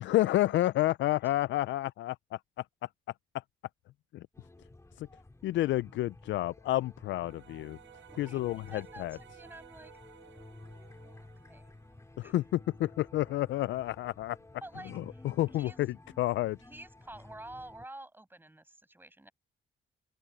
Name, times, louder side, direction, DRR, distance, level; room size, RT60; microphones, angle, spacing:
voice 1, 0.0-2.4 4.1-4.3 5.0-5.1 5.4-7.8 8.2-9.2 12.3-12.4 12.8-14.4 14.9-16.6, left 15 dB, 70° left, 0.4 m, -30 dB
sound 1, 4.3-17.9, left 2 dB, 15° left, 5.0 m, -54 dB
sound 2, 7.2-12.4, right 11 dB, 70° right, 7.1 m, -56 dB
voice 2, 8.1-9.9 10.2-11.7 12.2-12.4 14.6-15.8 16.6-19.3, right 1 dB, 10° right, 7.4 m, -50 dB
open air
cardioid pair, 90°, 20 cm